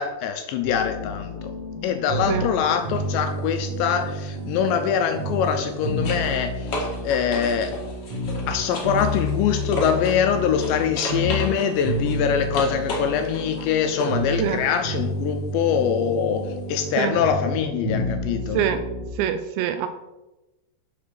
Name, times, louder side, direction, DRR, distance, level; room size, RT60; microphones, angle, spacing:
voice 1, 0.0-1.5 1.8-7.7 8.5-18.7, left 8 dB, 80° left, 7 dB, 2.7 m, -24 dB
sound 1, 0.6-19.1, equal, 50° right, 0.6 m, -30 dB
sound 2, 2.8-3.0 5.3-10.3 10.6-14.3 17.0-17.1, left 1 dB, 50° left, 1.8 m, -34 dB
voice 2, 19.2-19.9, right 10 dB, 80° right, 9 dB, 2.7 m, -24 dB
7.6 x 6.5 x 6.8 m, 1.0 s
omnidirectional pair, 5.5 m